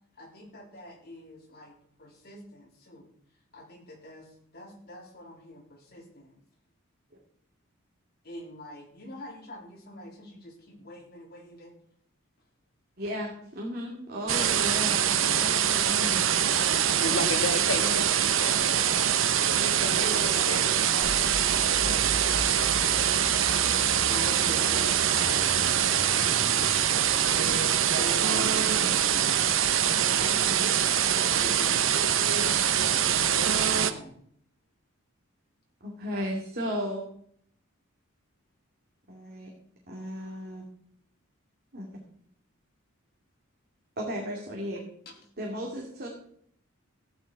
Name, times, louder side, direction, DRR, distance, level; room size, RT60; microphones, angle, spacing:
voice 1, 0.2-3.1 3.5-4.3 4.5-6.3 8.2-11.7 19.9-21.1 21.5-29.3 31.4-31.8 33.7-34.2, left 1 dB, 50° left, 0 dB, 3.6 m, -44 dB
voice 2, 13.0-16.2 17.8-18.1 30.2-30.7 35.8-37.0 39.1-39.5 39.9-40.6 41.7-41.9 44.0-44.8 45.4-46.2, equal, 45° right, -1 dB, 2.4 m, -35 dB
sound 1, 14.3-33.9, right 9 dB, 65° right, 0.8 m, -24 dB
voice 3, 17.0-18.0 18.4-18.8 19.8-20.6 22.7-22.8 23.8-24.0, left 2 dB, 70° left, 5 dB, 1.9 m, -33 dB
sound 2, 21.0-27.4, equal, 10° right, 5.1 m, -40 dB
14.5 x 9.8 x 4.7 m, 0.65 s
head